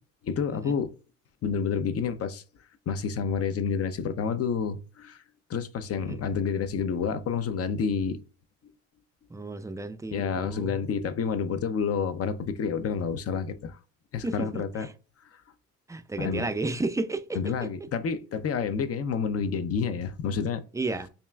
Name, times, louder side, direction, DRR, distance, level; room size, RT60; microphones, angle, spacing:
voice 1, 0.2-0.9 1.4-2.4 2.9-5.2 5.5-8.2 10.1-13.8 14.1-14.9 16.2-16.5 17.3-20.6, left 6 dB, 50° left, 0.6 m, -29 dB
voice 2, 9.3-10.9 14.2-14.9 15.9-17.9 20.7-21.1, right 2 dB, 10° right, 0.4 m, -33 dB
5.3 x 2.5 x 2.3 m
cardioid pair, 90°, 30 cm